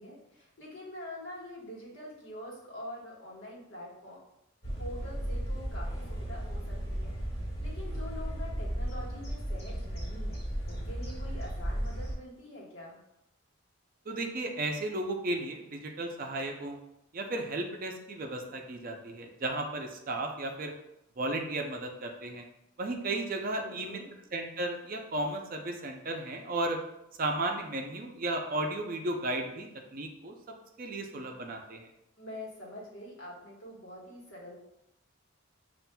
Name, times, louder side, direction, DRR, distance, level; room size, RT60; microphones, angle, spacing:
voice 1, 0.0-4.2 4.8-7.2 7.6-13.0 23.6-24.1 32.2-34.6, left 1 dB, 70° left, -4 dB, 1.3 m, -45 dB
sound 1, 4.6-12.1, equal, 50° left, 1.5 m, -35 dB
voice 2, 14.1-16.8 17.1-20.7 21.2-22.4 22.8-24.0 24.3-26.8 27.2-30.3 30.8-31.9, right 2 dB, 45° right, 3 dB, 0.5 m, -34 dB
6.9 x 2.5 x 2.2 m, 0.85 s
head